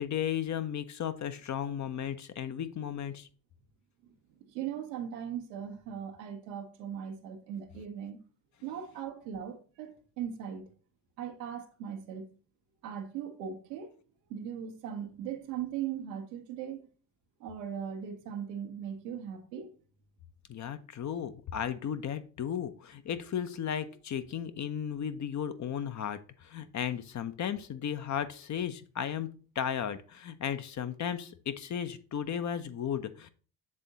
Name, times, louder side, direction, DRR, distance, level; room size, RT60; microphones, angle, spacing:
voice 1, 0.0-3.3 20.5-29.3 29.6-33.3, left 9 dB, 35° left, 0.6 m, -35 dB
voice 2, 4.3-8.2 8.6-10.7 11.2-12.3 12.8-13.9 14.3-16.9 17.4-19.7, right 8 dB, 90° right, 1.0 m, -39 dB
7.6 x 3.6 x 3.9 m
hypercardioid pair, 65°, 49 cm